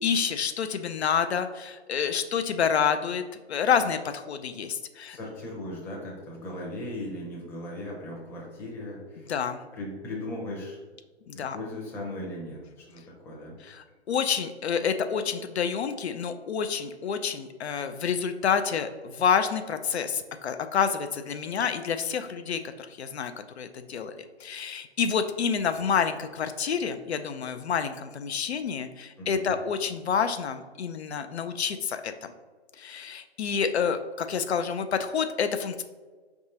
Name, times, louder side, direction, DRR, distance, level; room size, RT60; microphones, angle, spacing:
voice 1, 0.0-3.2 3.5-5.2 9.3-9.6 11.3-11.6 13.7-32.3 32.8-35.8, left 7 dB, 70° left, 9 dB, 0.5 m, -28 dB
voice 2, 5.1-9.3 9.7-10.8 11.3-13.6 29.2-29.5, left 1 dB, 5° left, -4 dB, 0.6 m, -38 dB
4.9 x 3.5 x 2.7 m, 1.4 s
figure-of-eight pair, 130°, 33 cm